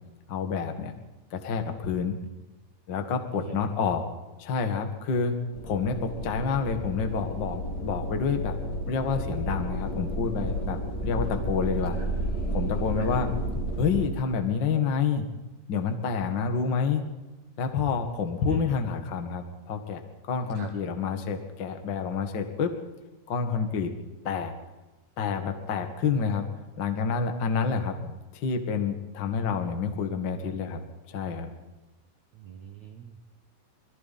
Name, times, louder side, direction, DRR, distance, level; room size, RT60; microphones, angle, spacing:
voice 1, 0.3-0.9 1.3-2.2 2.9-4.0 4.4-5.3 5.6-8.5 8.9-12.0 12.5-13.3 13.8-15.2 15.7-17.0 17.6-20.0 20.3-22.7 23.3-23.9 24.2-24.5 25.2-26.5 26.8-30.8 31.1-31.5, left 5 dB, 80° left, 5 dB, 1.0 m, -28 dB
voice 2, 3.4-3.7 12.0-12.1 13.0-13.2 18.4-18.6 20.5-20.7 32.3-33.3, right 8 dB, 90° right, 4 dB, 1.6 m, -42 dB
sound 1, 5.5-14.1, equal, 30° left, 2.2 m, -32 dB
28.0 x 22.0 x 4.3 m, 1.1 s
omnidirectional pair, 5.2 m